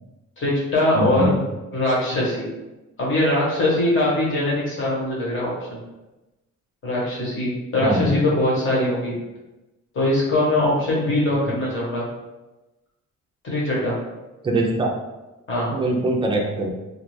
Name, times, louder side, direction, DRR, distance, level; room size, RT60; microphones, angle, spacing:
voice 1, 0.4-1.3 1.7-2.5 3.0-5.8 6.8-9.1 9.9-12.0 13.4-13.9 15.5-15.7, left 1 dB, 40° left, -5 dB, 1.1 m, -22 dB
voice 2, 0.9-1.4 7.8-8.2 11.5-11.6 14.4-14.9 15.7-16.7, right 1 dB, 20° right, 0 dB, 0.3 m, -22 dB
2.4 x 2.4 x 3.0 m, 1.0 s
wide cardioid pair, 160°, 30 cm